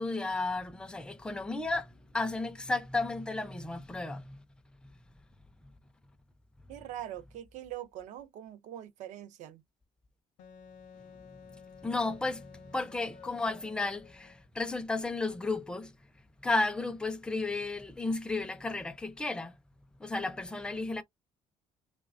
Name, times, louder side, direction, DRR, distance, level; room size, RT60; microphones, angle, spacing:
voice 1, 0.0-4.4 4.8-4.9 11.3-16.0 16.4-19.6 20.0-21.0, left 3 dB, 5° left, 0.4 m, -33 dB
voice 2, 6.7-9.6, right 12 dB, 70° right, 0.5 m, -43 dB
Wind instrument woodwind instrument, 10.4-14.5, left 6 dB, 70° left, 0.5 m, -53 dB
3.1 x 2.1 x 2.3 m
cardioid pair, 150°, 13 cm